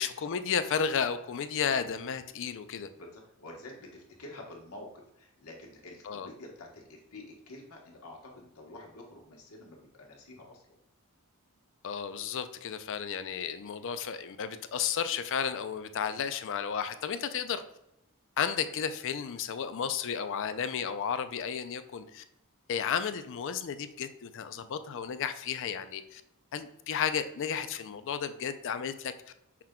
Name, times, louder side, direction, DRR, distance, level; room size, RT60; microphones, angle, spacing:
voice 1, 0.0-2.9 6.0-6.3 11.8-17.6 18.4-22.2 22.7-26.2 26.5-29.1, left 7 dB, 60° left, 11 dB, 0.4 m, -33 dB
voice 2, 2.9-10.6, left 2 dB, 75° left, 0 dB, 1.1 m, -48 dB
5.8 x 2.2 x 3.6 m, 0.83 s
head